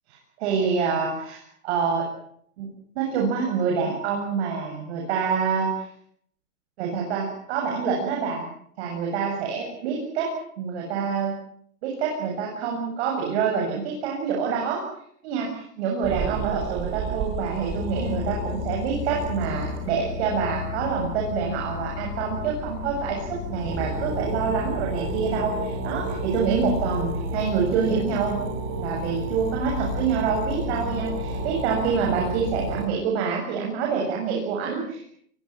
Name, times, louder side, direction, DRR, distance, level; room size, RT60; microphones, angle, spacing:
voice 1, 0.4-2.0 2.6-2.7 2.9-5.9 6.8-8.5 8.8-10.3 10.6-11.4 11.8-14.8 15.2-28.4 28.8-35.0, right 6 dB, 45° right, -1 dB, 7.8 m, -26 dB
sound 1, 16.0-20.0 22.7-22.8 23.2-23.3 23.5-32.9, right 7 dB, 25° right, 3.5 m, -33 dB
sound 2, 17.7-32.8, left 6 dB, 50° left, 7.7 m, -33 dB
26.0 x 23.5 x 7.5 m, 0.66 s
hypercardioid pair, 160°, 46 cm